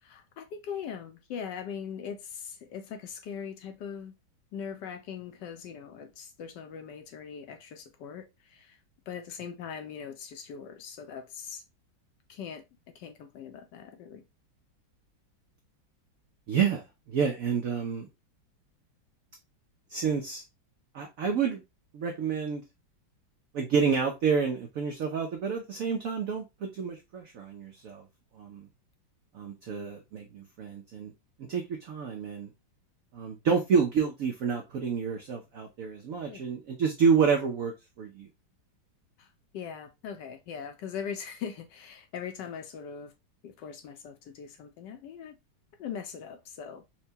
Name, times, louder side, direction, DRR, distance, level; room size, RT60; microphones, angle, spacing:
voice 1, 0.0-4.1 4.5-8.8 9.1-11.6 12.3-12.6 12.9-14.2 36.3-36.6 39.2-39.3 39.5-43.1 43.4-45.4 45.8-46.8, left 7 dB, 75° left, 1.1 m, -41 dB
voice 2, 16.5-18.1 19.9-20.4 20.9-21.6 21.9-22.6 23.5-28.0 28.4-28.7 29.3-31.1 31.5-32.5 33.1-37.7 38.0-38.3, right 6 dB, 80° right, 0.7 m, -29 dB
4.4 x 2.2 x 2.7 m
omnidirectional pair, 2.1 m